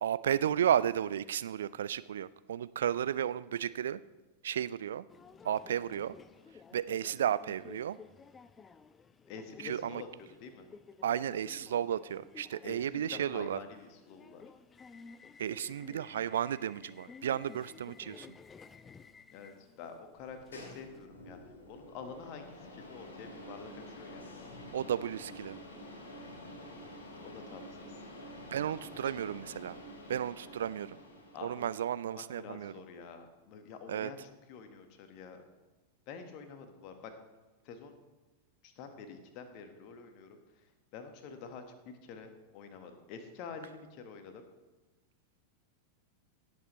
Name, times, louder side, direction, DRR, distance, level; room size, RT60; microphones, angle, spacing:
voice 1, 0.0-4.0 4.4-5.0 5.4-6.2 6.7-8.0 9.6-10.0 11.0-13.6 15.4-18.4 24.7-25.6 28.5-29.8 30.1-31.0 31.4-32.7 33.9-34.1, right 10 dB, 65° right, 17 dB, 0.3 m, -33 dB
Subway metro underground, 5.1-21.1, left 5 dB, 20° left, 0.4 m, -55 dB
voice 2, 9.3-10.7 12.6-14.4 19.3-24.2 27.2-28.0 29.1-29.2 31.3-31.7 32.0-34.2 34.5-35.4 36.1-37.1 37.6-37.9 38.6-44.4, left 5 dB, 40° left, 6 dB, 1.4 m, -48 dB
sound 1, 20.1-31.7, left 1 dB, 70° left, 2.9 m, -49 dB
17.5 x 7.8 x 3.2 m, 1.1 s
figure-of-eight pair, 90°, 0 cm